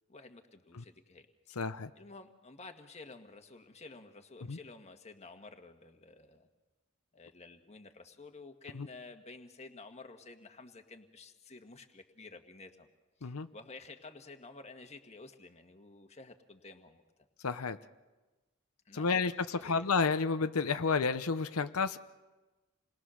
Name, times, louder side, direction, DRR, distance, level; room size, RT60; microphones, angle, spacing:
voice 1, 0.1-1.6 2.0-6.5 7.1-12.9 13.2-17.0 18.9-19.2 19.5-20.0, left 3 dB, 30° left, 5 dB, 1.6 m, -52 dB
voice 2, 1.6-1.9 4.5-4.6 8.7-8.9 13.2-13.5 17.4-17.8 18.9-22.0, left 4 dB, 90° left, 9 dB, 0.8 m, -31 dB
28.5 x 21.0 x 6.4 m, 1.2 s
head